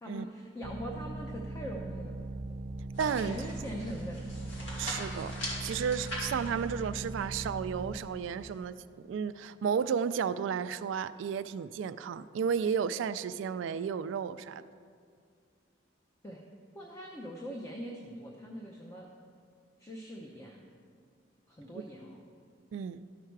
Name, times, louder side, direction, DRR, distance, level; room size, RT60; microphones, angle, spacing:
voice 1, 0.0-2.2 3.3-4.2 16.2-16.4 16.7-19.1 19.8-20.6 21.5-22.2, equal, 15° left, 0 dB, 0.7 m, -42 dB
sound 1, 0.6-8.0, right 2 dB, 35° right, 0.6 m, -40 dB
sound 2, 2.9-8.7, left 1 dB, 90° left, 2.6 m, -43 dB
voice 2, 3.0-3.4 4.8-5.3 5.6-14.6 22.7-23.0, right 7 dB, 85° right, 13 dB, 0.3 m, -33 dB
12.5 x 5.7 x 4.6 m, 2.2 s
head